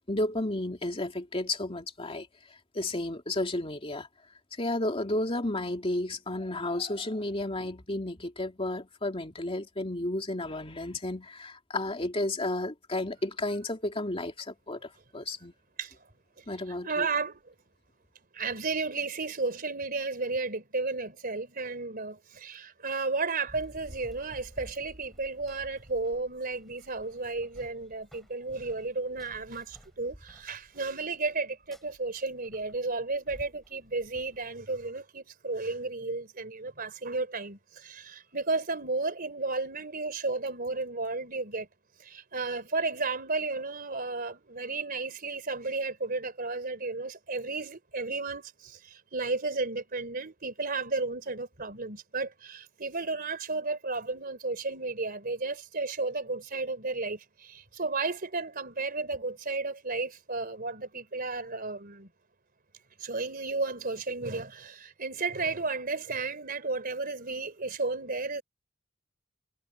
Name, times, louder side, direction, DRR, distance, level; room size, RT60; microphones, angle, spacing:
voice 1, 0.1-2.3 2.7-4.1 4.6-15.5 16.5-17.1, left 1 dB, 30° left, 2.6 m, -32 dB
voice 2, 16.8-17.4 18.3-41.7 42.0-62.1 63.0-68.4, right 3 dB, 45° right, 3.6 m, -33 dB
Run, 23.5-34.9, equal, ahead, 7.9 m, -53 dB
head